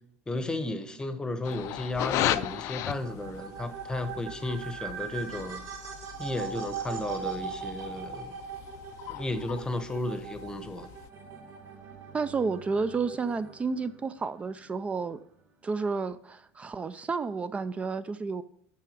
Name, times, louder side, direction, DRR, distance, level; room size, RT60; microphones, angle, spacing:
voice 1, 0.3-5.6 6.2-8.4 9.1-10.9, left 2 dB, 15° left, 0.9 m, -34 dB
sound 1, 1.4-11.1, left 13 dB, 55° left, 0.5 m, -37 dB
sound 2, 2.3-13.6, right 7 dB, 65° right, 2.8 m, -40 dB
sound 3, 11.1-17.0, right 6 dB, 35° right, 2.9 m, -54 dB
voice 2, 12.1-15.2 15.6-18.4, right 4 dB, 20° right, 0.4 m, -31 dB
7.6 x 5.9 x 6.4 m
supercardioid pair, 120°, 6 cm